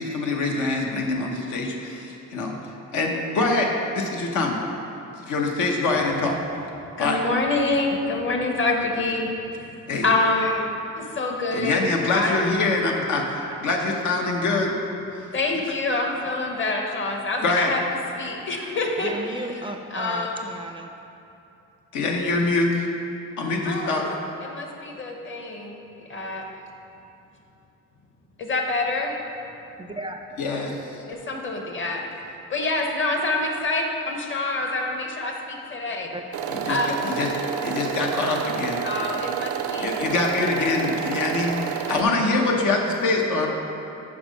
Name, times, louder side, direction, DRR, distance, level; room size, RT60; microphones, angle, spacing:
voice 1, 0.0-2.6 2.9-4.6 5.2-6.4 7.0-7.2 9.9-10.1 11.5-14.8 15.2-15.3 17.4-17.7 21.9-22.9 23.4-24.1 30.4-30.8 36.5-37.3 37.6-38.8 39.7-43.5, left 3 dB, 80° left, 0 dB, 1.0 m, -24 dB
voice 2, 7.0-9.8 10.0-11.8 12.1-12.4 15.3-17.8 18.1-19.1 19.9-20.4 23.6-24.1 24.4-25.8 26.1-26.4 28.4-29.1 31.1-32.0 32.5-36.1 36.7-36.9 38.8-39.9, left 2 dB, 40° left, 2 dB, 1.0 m, -26 dB
voice 3, 19.0-20.9 29.8-30.2 36.1-36.2, right 2 dB, 15° right, 4 dB, 0.4 m, -34 dB
sound 1, 36.3-42.0, right 8 dB, 80° right, 0.5 m, -29 dB
6.0 x 5.2 x 5.2 m, 2.8 s
cardioid pair, 90°, 30 cm